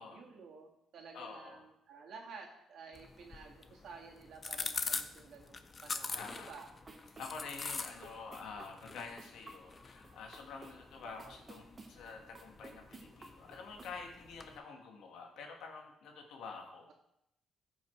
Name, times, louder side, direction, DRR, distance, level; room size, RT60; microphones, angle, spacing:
voice 1, 0.1-6.7 11.0-11.4, right 5 dB, 70° right, 0 dB, 2.0 m, -52 dB
voice 2, 1.1-1.6 6.1-6.5 7.2-16.9, left 4 dB, 80° left, 2 dB, 1.6 m, -48 dB
sound 1, 2.9-14.6, left 4 dB, 35° left, 0.7 m, -45 dB
sound 2, 6.4-14.0, right 3 dB, 30° right, 1.3 m, -57 dB
13.0 x 5.6 x 3.2 m, 0.81 s
cardioid pair, 90°, 0 cm